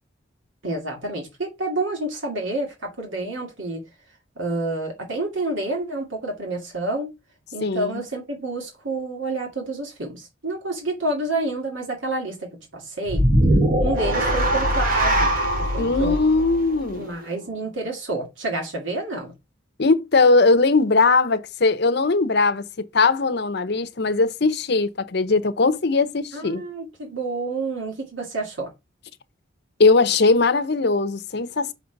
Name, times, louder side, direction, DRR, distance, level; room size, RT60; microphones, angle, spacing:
voice 1, 0.6-3.8 4.4-7.1 7.5-12.5 12.7-13.2 13.8-15.3 15.6-16.2 17.0-19.3 26.3-28.7, right 2 dB, 75° right, 2.5 m, -29 dB
voice 2, 7.6-8.0 15.8-17.1 19.8-22.6 22.9-26.6 29.8-31.7, left 3 dB, 55° left, 0.8 m, -19 dB
sound 1, 13.1-17.4, right 1 dB, 45° right, 1.7 m, -21 dB
6.0 x 4.0 x 5.8 m
head